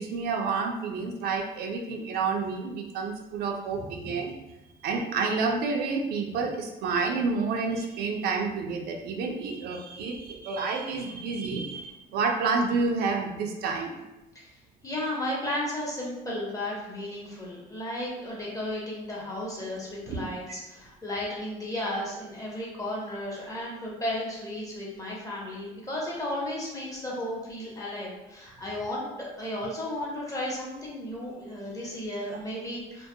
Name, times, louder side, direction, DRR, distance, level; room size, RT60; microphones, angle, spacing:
voice 1, 0.0-4.3 4.8-13.9 20.1-20.2, right 4 dB, 70° right, 2 dB, 0.4 m, -29 dB
voice 2, 3.7-4.1 14.3-14.5 14.8-33.1, left 1 dB, 20° left, -4 dB, 0.8 m, -34 dB
2.2 x 2.1 x 2.7 m, 0.98 s
cardioid pair, 110°, 17 cm